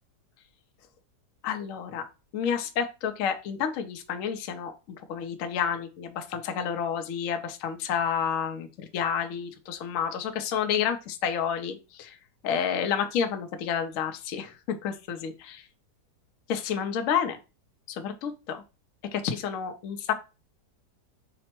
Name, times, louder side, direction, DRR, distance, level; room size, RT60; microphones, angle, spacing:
voice 1, 1.4-2.0 2.3-12.2 12.4-15.7 16.5-17.4 17.9-18.6 19.1-20.1, left 7 dB, 65° left, 6 dB, 0.9 m, -30 dB
5.2 x 2.0 x 4.3 m, 0.30 s
omnidirectional pair, 1.8 m